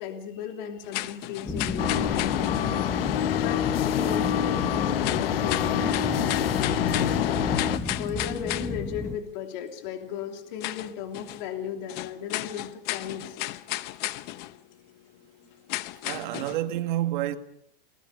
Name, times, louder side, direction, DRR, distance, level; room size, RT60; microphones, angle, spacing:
voice 1, 0.0-2.8 3.4-7.4 8.0-13.4, left 8 dB, 50° left, 3.1 m, -36 dB
sound 1, 0.8-2.7 5.0-8.7 10.2-10.3 10.6-11.4 11.9-14.6 15.7-16.7, left 17 dB, 35° left, 0.9 m, -34 dB
sound 2, 1.5-9.2, left 4 dB, 10° left, 1.1 m, -32 dB
sound 3, 1.8-7.8, left 10 dB, 70° left, 1.2 m, -26 dB
voice 2, 16.0-17.4, right 14 dB, 55° right, 2.1 m, -28 dB
28.5 x 19.0 x 5.2 m
hypercardioid pair, 140°, 30 cm